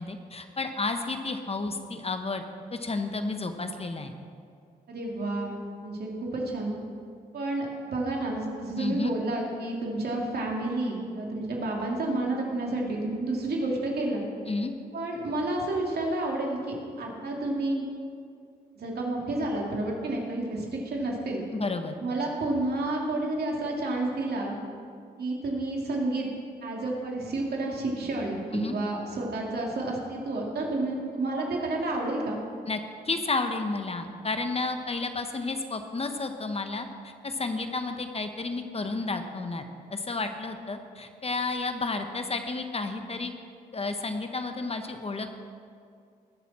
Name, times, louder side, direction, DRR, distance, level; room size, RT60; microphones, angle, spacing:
voice 1, 0.0-2.4 2.7-4.1 8.8-9.1 14.5-14.7 21.5-21.9 28.5-28.8 32.7-32.8 33.0-39.6 39.9-43.3 43.7-45.3, left 3 dB, 35° left, 7 dB, 1.0 m, -31 dB
voice 2, 4.9-5.5 5.8-6.7 7.3-14.3 14.9-17.8 18.8-21.4 22.0-24.6 25.2-26.3 26.6-32.4, right 2 dB, 60° right, -1 dB, 2.7 m, -30 dB
20.0 x 6.9 x 4.3 m, 2.3 s
supercardioid pair, 55°, 18 cm